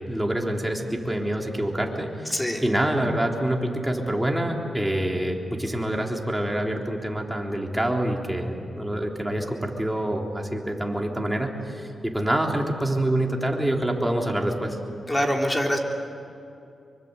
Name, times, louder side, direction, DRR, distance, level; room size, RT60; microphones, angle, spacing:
voice 1, 0.1-14.8, right 1 dB, 5° right, 1 dB, 3.5 m, -26 dB
voice 2, 2.3-2.6 15.1-15.8, equal, 15° left, 1 dB, 3.8 m, -24 dB
25.5 x 24.0 x 8.2 m, 2.7 s
cardioid pair, 80°, 0 cm